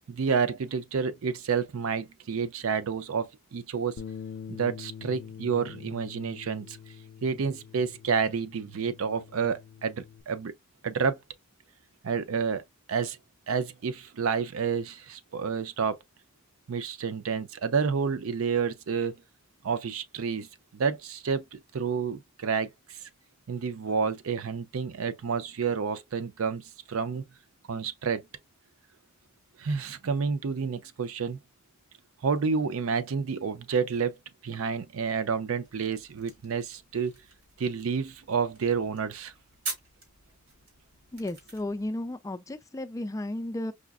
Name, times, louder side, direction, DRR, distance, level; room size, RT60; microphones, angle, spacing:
voice 1, 0.1-4.0 4.5-6.8 7.2-10.5 10.8-11.2 12.0-13.2 13.5-16.0 16.7-19.2 19.6-20.5 20.7-23.0 23.5-27.2 27.7-28.3 29.6-31.4 32.2-34.2 34.4-37.2 37.6-39.3, right 5 dB, 90° right, 0.5 m, -29 dB
Bass guitar, 4.0-10.2, left 7 dB, 85° left, 0.4 m, -45 dB
sound 1, 35.6-41.9, right 3 dB, 60° right, 1.9 m, -44 dB
voice 2, 41.1-43.7, left 1 dB, 15° left, 0.3 m, -34 dB
4.9 x 2.4 x 2.3 m
head